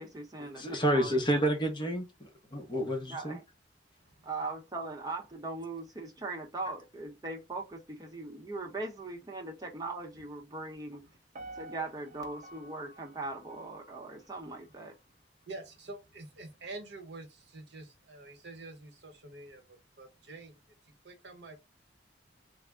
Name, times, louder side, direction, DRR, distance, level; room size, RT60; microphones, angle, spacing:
voice 1, 0.0-1.2 3.1-3.4 4.2-11.1 11.5-14.9, right 3 dB, 20° right, 0.8 m, -40 dB
voice 2, 0.5-3.4, right 1 dB, 25° left, 0.8 m, -30 dB
Piano, 11.3-14.4 14.9-15.0, right 1 dB, 45° right, 0.5 m, -49 dB
voice 3, 15.5-21.6, right 2 dB, 70° right, 0.9 m, -47 dB
3.4 x 2.1 x 3.5 m
head